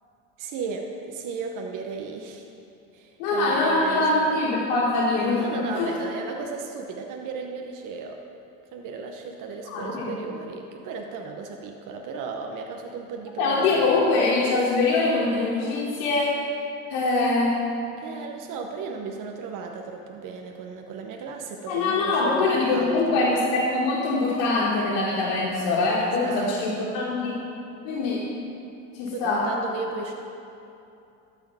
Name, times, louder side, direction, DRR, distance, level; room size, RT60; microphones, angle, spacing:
voice 1, 0.4-2.5 2.9-4.4 5.4-8.2 8.7-13.9 18.0-23.2 26.0-27.1 29.1-30.1, right 5 dB, 55° right, 2 dB, 0.9 m, -35 dB
voice 2, 3.2-5.9 9.7-10.2 13.4-16.4 16.9-17.6 21.7-27.4 27.8-28.3 28.9-29.5, left 3 dB, 80° left, -5 dB, 1.5 m, -23 dB
13.0 x 4.6 x 5.5 m, 2.8 s
supercardioid pair, 90°, 37 cm